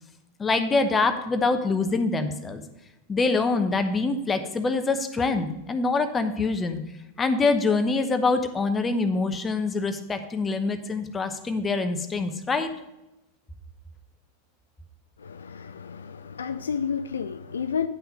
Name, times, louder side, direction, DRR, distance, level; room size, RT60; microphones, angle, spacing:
voice 1, 0.4-2.6 3.1-6.8 7.2-12.7, left 3 dB, 15° left, 0.9 m, -25 dB
voice 2, 15.2-17.9, left 7 dB, 70° left, 0.4 m, -31 dB
9.8 x 5.8 x 5.2 m
figure-of-eight pair, 90°, 0 cm